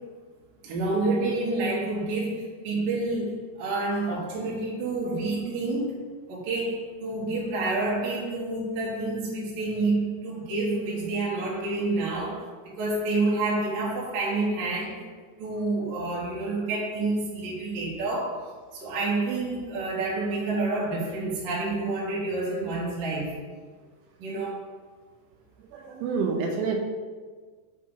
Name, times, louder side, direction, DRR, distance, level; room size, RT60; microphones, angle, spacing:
voice 1, 0.6-12.5 12.8-15.1 15.4-23.4 24.2-24.7, right 2 dB, 60° right, -6 dB, 2.6 m, -28 dB
voice 2, 25.7-26.8, right 5 dB, 85° right, 2 dB, 3.0 m, -28 dB
7.5 x 5.5 x 4.0 m, 1.5 s
omnidirectional pair, 5.7 m